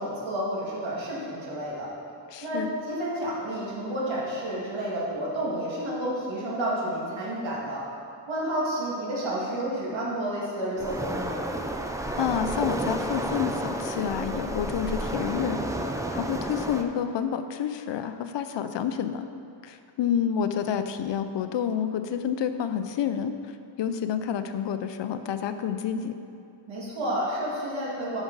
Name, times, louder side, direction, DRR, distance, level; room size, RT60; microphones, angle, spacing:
voice 1, 0.0-1.9 2.4-7.8 8.3-11.4 26.7-28.2, right 1 dB, 80° right, -6 dB, 2.1 m, -30 dB
voice 2, 2.3-2.7 12.2-15.6 15.9-19.3 19.6-23.3 23.8-26.1, left 8 dB, 70° left, 9 dB, 0.6 m, -29 dB
Waves surf, 10.8-16.8, right 1 dB, 10° right, 0.3 m, -31 dB
10.5 x 6.1 x 3.9 m, 2.4 s
wide cardioid pair, 165°, 45 cm